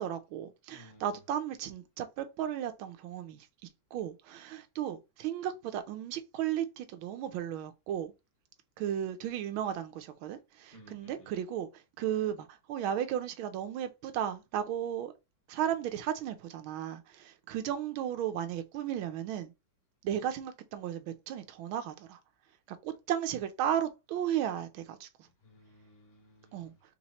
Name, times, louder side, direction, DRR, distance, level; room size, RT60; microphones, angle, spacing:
voice 1, 0.0-3.5 3.9-8.1 8.8-11.7 12.0-15.1 15.5-19.5 20.0-22.2 22.8-25.1 26.5-26.7, right 10 dB, 90° right, 1.5 m, -35 dB
voice 2, 0.7-1.1 10.7-11.3 25.4-26.7, equal, 30° left, 1.8 m, -57 dB
3.7 x 2.9 x 4.1 m
omnidirectional pair, 2.2 m